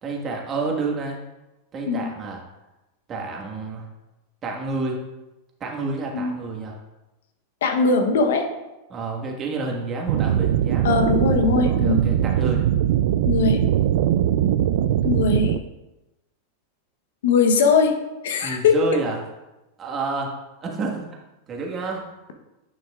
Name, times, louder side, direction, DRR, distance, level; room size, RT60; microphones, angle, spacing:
voice 1, 0.0-1.2 1.7-2.4 3.1-3.9 4.4-5.0 5.6-6.8 8.9-11.0 11.6-12.7 18.4-19.2 19.8-21.2 21.5-22.0, right 3 dB, 30° right, 0 dB, 1.6 m, -29 dB
voice 2, 7.6-8.5 10.8-12.0 13.2-13.6 15.0-15.6 17.2-18.0 18.2-18.7, left 5 dB, 75° left, 5 dB, 0.9 m, -20 dB
sound 1, 10.1-15.6, right 11 dB, 70° right, 0.3 m, -21 dB
10.0 x 5.7 x 2.4 m, 1.0 s
hypercardioid pair, 105°, 0 cm